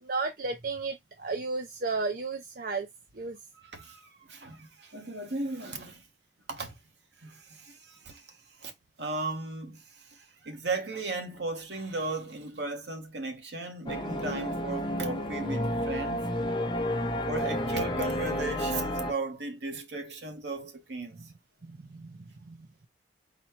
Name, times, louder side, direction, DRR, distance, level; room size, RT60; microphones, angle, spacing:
voice 1, 0.0-2.9 3.1-3.4 21.7-22.6, right 3 dB, 55° right, 0.6 m, -33 dB
voice 2, 3.5-6.0 6.5-6.8 7.2-8.7 9.0-16.3 17.3-21.3, right 3 dB, 70° right, 1.2 m, -36 dB
sound 1, 13.9-19.1, equal, 25° left, 0.7 m, -31 dB
4.1 x 2.2 x 4.4 m
head